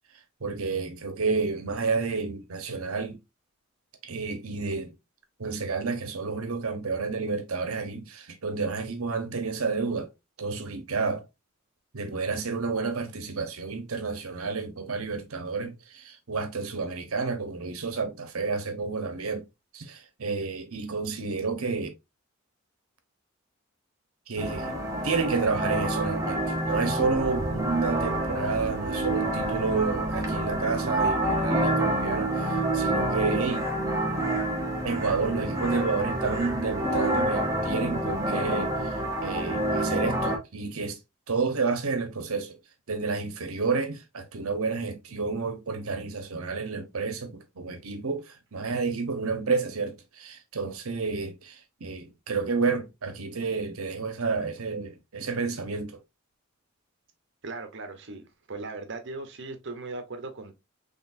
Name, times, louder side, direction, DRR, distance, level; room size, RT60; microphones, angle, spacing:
voice 1, 0.4-3.2 4.0-4.9 5.4-10.1 10.4-11.2 11.9-19.4 19.7-21.9 24.3-24.7 25.0-33.7 34.8-38.7 39.2-41.0 41.3-42.6 42.9-56.0, right 4 dB, 85° right, 1.0 m, -30 dB
sound 1, 24.4-40.4, right 1 dB, 15° right, 0.9 m, -28 dB
voice 2, 57.4-60.5, right 3 dB, 55° right, 0.8 m, -38 dB
3.9 x 3.4 x 2.6 m
head